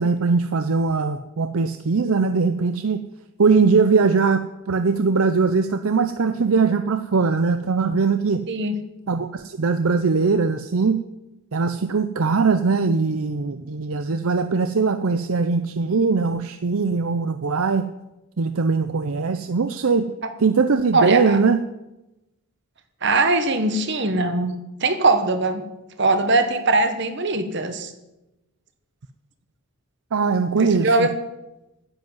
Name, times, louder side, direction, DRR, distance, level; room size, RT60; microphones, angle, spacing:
voice 1, 0.0-3.0 3.4-8.4 9.1-11.0 11.5-17.8 18.4-20.1 20.4-21.6 30.1-31.1, right 4 dB, 70° right, 10 dB, 0.6 m, -21 dB
voice 2, 8.5-8.8 20.9-21.4 23.0-24.5 24.8-25.6 26.0-27.9 30.6-31.1, right 2 dB, 50° right, 8 dB, 1.4 m, -20 dB
10.5 x 8.0 x 9.4 m, 0.98 s
head